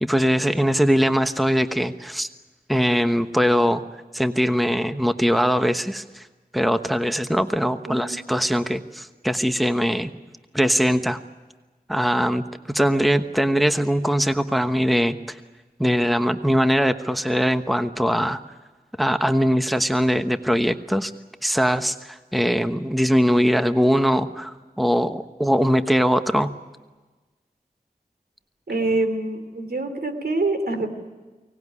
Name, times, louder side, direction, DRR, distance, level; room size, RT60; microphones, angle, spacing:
voice 1, 0.0-2.3 2.7-3.8 4.1-6.3 6.5-10.1 10.5-11.2 11.9-15.4 15.8-18.4 19.0-21.1 21.4-26.5, equal, ahead, 9 dB, 1.1 m, -21 dB
voice 2, 28.7-30.9, right 2 dB, 85° right, 7 dB, 3.1 m, -25 dB
24.0 x 19.0 x 9.8 m, 1.3 s
wide cardioid pair, 50°, 16 cm